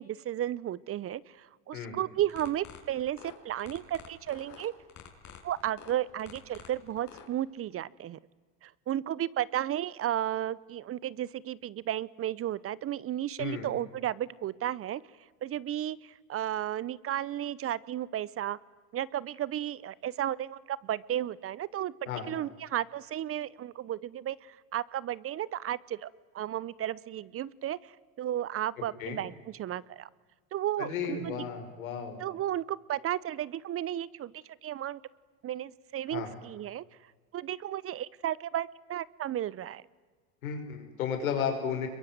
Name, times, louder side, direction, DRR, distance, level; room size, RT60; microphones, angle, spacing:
voice 1, 0.0-4.7 5.4-8.2 8.6-15.0 15.4-18.6 18.9-30.1 30.5-31.4 32.2-34.3 34.6-35.0 35.4-36.8 37.3-39.8, right 12 dB, 35° right, 22 dB, 0.7 m, -34 dB
sound 1, 2.2-7.3, left 8 dB, 45° left, 5.3 m, -49 dB
voice 2, 30.8-32.2 36.1-36.3 40.4-41.9, left 7 dB, 90° left, 4 dB, 5.5 m, -33 dB
26.5 x 22.5 x 9.3 m, 1.5 s
supercardioid pair, 100°, 41 cm